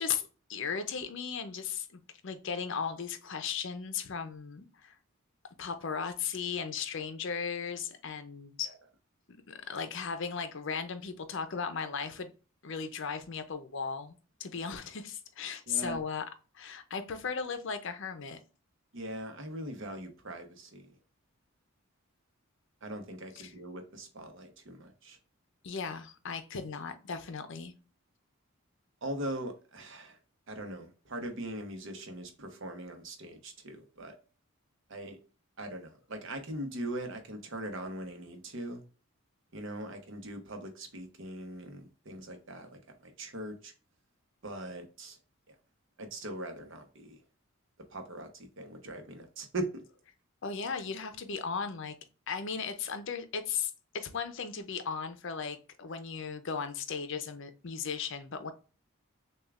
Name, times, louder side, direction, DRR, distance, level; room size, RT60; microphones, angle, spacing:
voice 1, 0.0-4.9 5.6-8.7 9.3-12.3 12.6-16.2 16.5-18.4 23.4-23.5 25.6-27.7 50.4-52.0 52.3-58.5, left 6 dB, 60° left, 0.6 m, -36 dB
voice 2, 15.7-16.0 18.9-21.0 22.8-25.2 29.0-30.2 30.5-34.1 34.9-35.2 35.6-38.8 39.5-43.7 44.4-45.2 45.5-45.6 46.0-47.2 47.9-49.8, right 1 dB, 60° right, 0.9 m, -41 dB
6.4 x 2.4 x 2.4 m
head